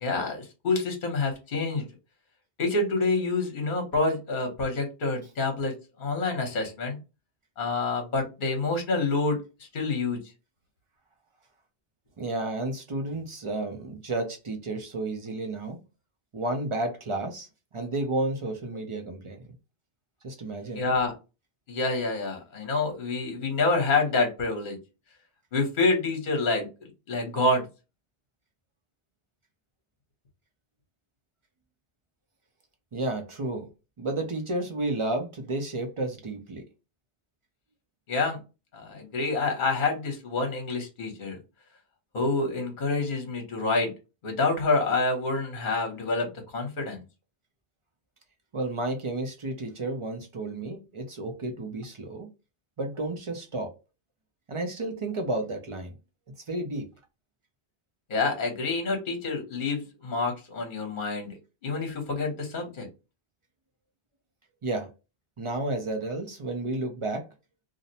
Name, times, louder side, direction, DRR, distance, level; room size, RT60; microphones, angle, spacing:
voice 1, 0.0-1.8 2.6-7.0 7.6-9.4 9.7-10.2 20.7-21.1 21.7-24.8 25.5-27.7 38.1-38.4 38.7-41.4 42.1-43.9 44.2-47.0 58.1-61.3 61.6-62.9, left 3 dB, 50° left, 1.0 m, -27 dB
voice 2, 12.2-15.8 16.3-17.5 17.7-19.5 20.2-20.9 32.9-33.7 34.0-36.6 48.5-52.3 52.8-53.7 54.5-56.0 56.5-56.9 64.6-64.9 65.4-67.3, right 2 dB, 45° right, 0.4 m, -31 dB
2.5 x 2.0 x 2.7 m
omnidirectional pair, 1.2 m